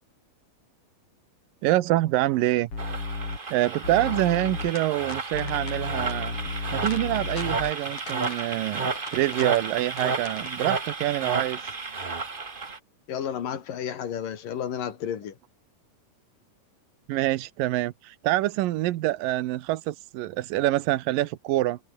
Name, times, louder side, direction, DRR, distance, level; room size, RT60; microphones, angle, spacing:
voice 1, 1.6-2.7 3.5-6.4 6.7-11.6 17.1-21.8, right 16 dB, 90° right, 2.6 m, -26 dB
sound 1, 2.7-3.4 3.8-4.7 5.3-7.7, left 4 dB, 45° left, 5.8 m, -33 dB
sound 2, 2.8-12.8, right 4 dB, 45° right, 0.7 m, -32 dB
sound 3, 3.2-10.6, left 3 dB, 60° left, 9.5 m, -46 dB
voice 2, 13.1-15.4, left 9 dB, 80° left, 4.1 m, -32 dB
omnidirectional pair, 3.8 m